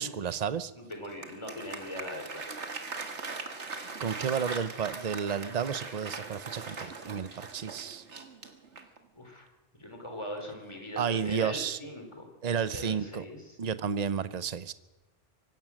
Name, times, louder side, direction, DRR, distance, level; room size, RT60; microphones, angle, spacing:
voice 1, 0.0-0.7 4.0-8.0 11.0-11.8 12.4-13.2 13.6-14.7, right 7 dB, 40° right, 14 dB, 0.8 m, -32 dB
voice 2, 0.7-2.5 9.1-9.5 9.7-12.3 12.6-13.6, left 1 dB, 25° left, 3 dB, 4.1 m, -41 dB
Applause, 0.9-9.1, right 4 dB, 80° right, 2.0 m, -40 dB
24.0 x 16.5 x 6.4 m, 1.1 s
omnidirectional pair, 1.2 m